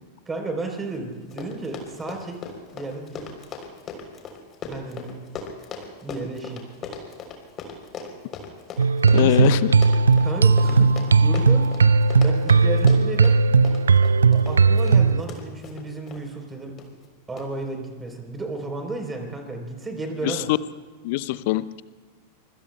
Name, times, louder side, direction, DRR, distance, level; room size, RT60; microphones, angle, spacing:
voice 1, 0.3-2.4 2.7-3.3 4.6-5.1 6.0-6.6 9.1-9.5 10.2-11.6 12.2-13.4 14.3-16.7 17.3-20.5, right 2 dB, 15° right, 3 dB, 3.6 m, -33 dB
Run, 0.9-1.0 1.2-16.2 16.8-17.1 17.4-17.5, left 5 dB, 30° left, 3.4 m, -38 dB
sound 1, 8.8-15.2, right 4 dB, 70° right, 0.4 m, -17 dB
voice 2, 9.1-9.7 20.2-20.6 21.0-21.8, left 18 dB, 50° left, 17 dB, 0.6 m, -23 dB
25.5 x 24.5 x 2.2 m, 1.4 s
figure-of-eight pair, 90°, 0 cm